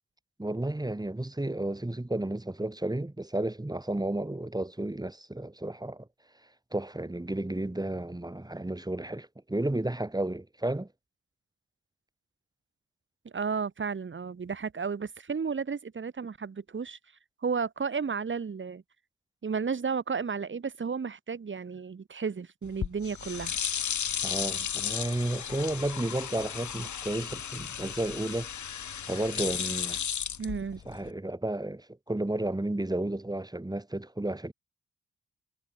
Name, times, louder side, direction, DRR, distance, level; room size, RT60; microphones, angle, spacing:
voice 1, 0.4-6.1 6.7-10.9 24.2-28.5 29.1-30.0 30.9-34.5, right 1 dB, 10° right, 3.6 m, -32 dB
voice 2, 13.2-17.0 17.4-18.8 19.4-23.6 30.4-30.8, right 5 dB, 40° right, 1.6 m, -33 dB
sound 1, 22.6-31.1, left 8 dB, 65° left, 2.2 m, -34 dB
cardioid pair, 85°, 32 cm